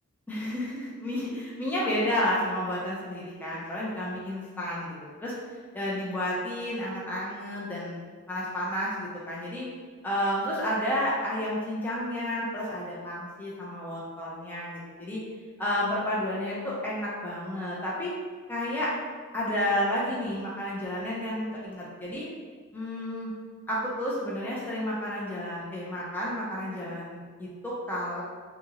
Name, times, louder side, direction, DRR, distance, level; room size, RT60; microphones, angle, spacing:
voice 1, 0.3-5.3 5.7-8.0 8.3-9.7 10.0-15.2 15.6-18.1 18.5-18.9 19.3-22.3 22.7-23.3 23.7-28.2, left 1 dB, 10° left, -7 dB, 0.5 m, -31 dB
2.8 x 2.8 x 2.5 m, 1.5 s
head